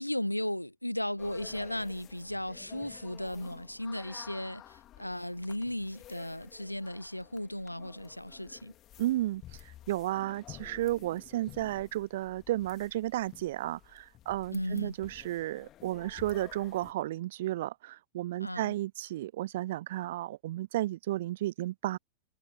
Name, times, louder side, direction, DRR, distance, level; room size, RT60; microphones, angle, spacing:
voice 1, 0.0-8.7 14.5-15.0 18.4-18.8, left 1 dB, 90° left, 0.4 m, -36 dB
sound 1, 1.2-16.9, left 13 dB, 35° left, 2.6 m, -53 dB
voice 2, 9.0-9.4 9.9-22.0, right 15 dB, 55° right, 0.4 m, -33 dB
figure-of-eight pair, 90°, 0 cm